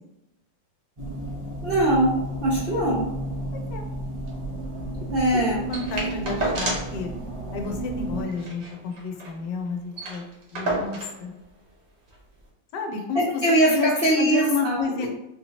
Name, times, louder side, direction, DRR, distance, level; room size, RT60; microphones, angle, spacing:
sound 1, 1.0-8.2, right 1 dB, 20° right, 0.8 m, -32 dB
voice 1, 1.6-3.0 5.1-5.6 13.1-15.1, right 1 dB, 80° right, -4 dB, 0.5 m, -22 dB
voice 2, 3.5-3.8 5.3-5.4 5.7-7.1 7.5-10.2 10.5-11.3 12.7-13.4 13.7-13.9 14.2-15.1, left 5 dB, 70° left, 4 dB, 1.1 m, -30 dB
sound 2, 5.7-7.0 7.3-7.4 7.7-7.9 8.3-9.4 9.7-9.8 9.9-11.2 12.1-12.2, right 2 dB, 55° right, 1.1 m, -30 dB
4.2 x 2.9 x 2.8 m, 0.89 s
omnidirectional pair, 2.1 m